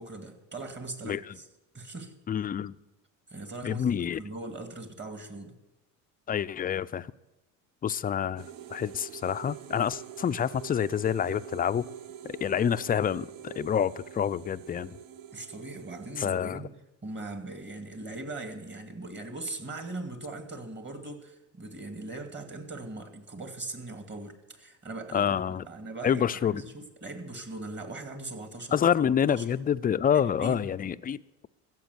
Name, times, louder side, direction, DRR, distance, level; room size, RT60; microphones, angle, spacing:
voice 1, 0.0-1.5 1.7-2.1 3.3-3.9 4.2-5.6 15.3-16.7 17.0-25.4 25.7-28.8 29.3-29.6 30.4-30.6, right 2 dB, 25° right, 2.2 m, -40 dB
voice 2, 2.3-2.8 3.6-4.2 6.3-7.1 7.8-11.9 12.2-15.0 16.2-16.6 25.1-25.6 26.0-26.6 28.7-31.5, left 8 dB, 20° left, 0.4 m, -27 dB
sound 1, 8.4-16.2, right 10 dB, 55° right, 0.8 m, -45 dB
15.5 x 7.4 x 8.0 m
supercardioid pair, 80°, 40 cm